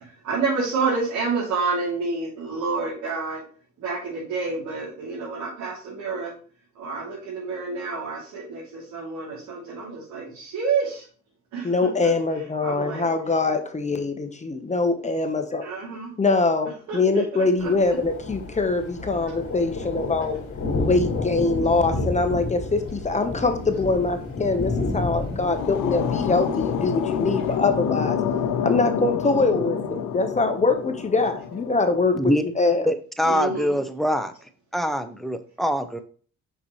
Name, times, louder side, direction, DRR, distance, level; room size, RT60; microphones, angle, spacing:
voice 1, 0.2-3.4 3.8-6.3 6.7-11.0 11.5-11.7 12.0-12.1 12.6-13.1 15.6-16.1 16.9-18.0 19.3-19.4 33.2-33.8, right 4 dB, 80° right, -7 dB, 3.1 m, -29 dB
voice 2, 11.6-15.7 16.2-20.4 20.8-28.2 28.6-32.2 32.6-32.9, left 3 dB, 25° left, 6 dB, 1.1 m, -23 dB
Thunder, 17.6-27.6, left 2 dB, 50° left, 2.3 m, -31 dB
sound 1, 25.0-32.2, left 7 dB, 85° left, 0.6 m, -28 dB
voice 3, 32.9-34.3 34.7-36.0, equal, ahead, 9 dB, 0.7 m, -24 dB
5.8 x 5.5 x 3.1 m, 0.42 s
cardioid pair, 90°, 30 cm